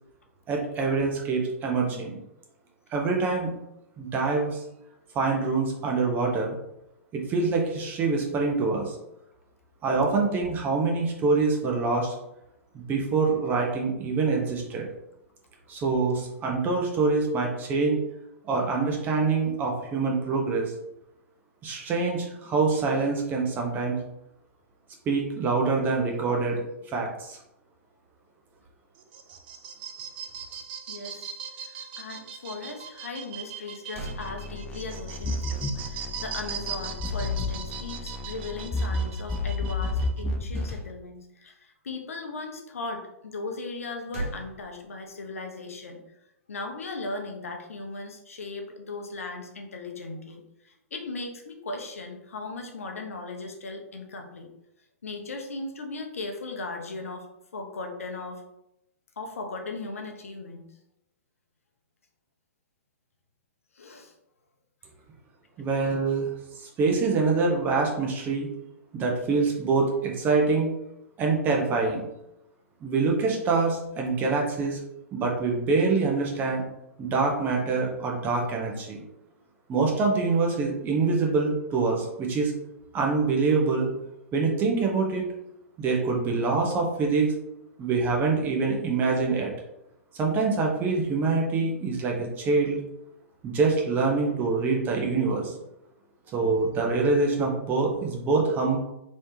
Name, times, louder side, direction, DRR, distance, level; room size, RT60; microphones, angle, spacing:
voice 1, 0.5-2.2 2.9-3.5 4.0-4.6 5.1-6.5 7.1-8.9 9.8-12.2 12.7-14.9 15.7-18.0 18.5-20.6 21.6-24.0 25.1-26.6 26.9-27.4 65.6-66.3 66.8-68.5 68.9-70.7 71.2-72.0 72.8-74.8 75.1-76.6 77.0-79.0 79.7-82.5 82.9-83.9 84.3-85.2 85.8-87.3 87.8-89.5 90.1-92.8 93.4-95.5 96.3-98.8, right 4 dB, 25° right, 0 dB, 0.8 m, -25 dB
sound 1, 29.0-40.2, right 7 dB, 45° right, 0.5 m, -40 dB
voice 2, 30.9-31.3 31.6-46.0 46.5-54.5 55.0-58.4 59.2-60.6 63.7-64.1 96.3-96.4, left 3 dB, 70° left, 3 dB, 0.7 m, -38 dB
sound 2, 33.5-33.6 33.9-35.1 40.5-41.4 43.7-45.3, right 2 dB, 60° right, 1.3 m, -40 dB
sound 3, 34.0-40.8, left 2 dB, 10° left, 0.4 m, -31 dB
3.3 x 3.1 x 2.8 m, 0.84 s
figure-of-eight pair, 110°, 8 cm